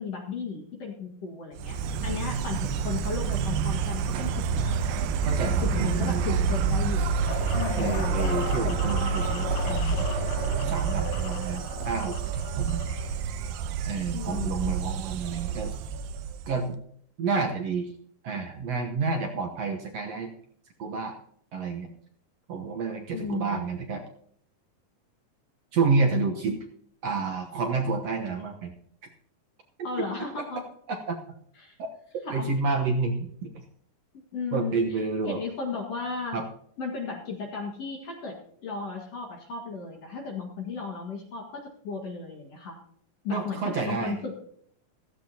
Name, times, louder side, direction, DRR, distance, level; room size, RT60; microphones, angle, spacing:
voice 1, 0.0-1.8 2.0-4.8 5.6-7.1 7.5-8.1 14.1-14.7 23.1-23.7 29.8-30.6 31.6-31.8 32.2-32.5 34.1-35.0 35.3-36.4 36.8-42.8 43.2-44.3, left 4 dB, 50° left, 1 dB, 2.6 m, -35 dB
Insect, 1.6-16.7, right 5 dB, 85° right, 2.5 m, -28 dB
voice 2, 5.2-6.6 7.8-10.1 10.6-12.8 13.9-15.7 16.5-16.8 17.2-17.9 18.2-20.3 20.8-21.2 21.5-21.9 22.5-24.0 25.7-26.6 27.0-28.7 31.1-31.2 31.8-31.9 32.1-33.6 34.5-35.4 36.3-36.4 43.3-44.1, right 4 dB, 60° right, 2 dB, 1.8 m, -29 dB
sound 1, 7.3-13.2, left 12 dB, 80° left, 1.7 m, -37 dB
15.0 x 14.5 x 2.8 m, 0.64 s
omnidirectional pair, 4.0 m